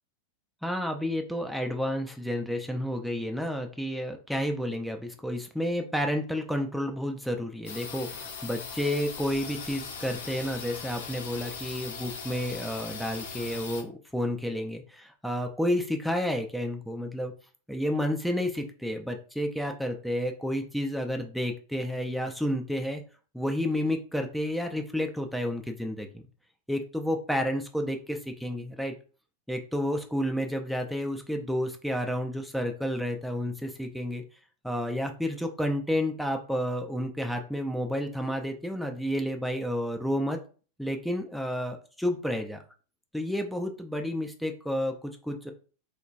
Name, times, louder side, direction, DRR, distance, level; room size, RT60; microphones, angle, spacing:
voice 1, 0.6-17.3 17.7-23.0 23.3-26.2 26.7-28.9 29.5-34.2 34.6-40.4 40.8-42.6 43.1-45.5, equal, ahead, 4 dB, 0.3 m, -30 dB
sound 1, 7.6-13.8, left 5 dB, 60° left, 0.6 m, -39 dB
3.0 x 2.1 x 2.5 m, 0.38 s
figure-of-eight pair, 90°, 0 cm